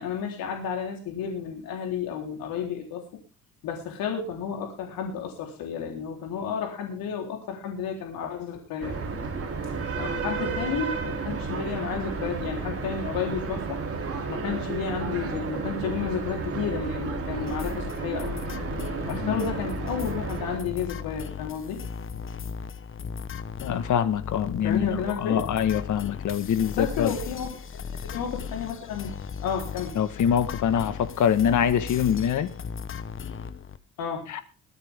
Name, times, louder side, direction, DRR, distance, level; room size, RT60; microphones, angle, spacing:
voice 1, 0.0-3.2 3.6-9.0 10.0-13.8 14.3-18.4 19.1-21.8 24.6-25.4 26.7-29.1 29.4-30.0 34.0-34.3, left 7 dB, 90° left, 2 dB, 4.0 m, -32 dB
sound 1, 8.8-20.6, right 4 dB, 45° right, 3.5 m, -32 dB
sound 2, 17.4-33.8, left 6 dB, 40° left, 1.1 m, -37 dB
voice 2, 19.1-19.4 23.6-27.1 29.9-32.5 34.3-34.4, left 8 dB, 60° left, 12 dB, 1.7 m, -24 dB
22.5 x 9.2 x 3.7 m, 0.34 s
cardioid pair, 110°, 34 cm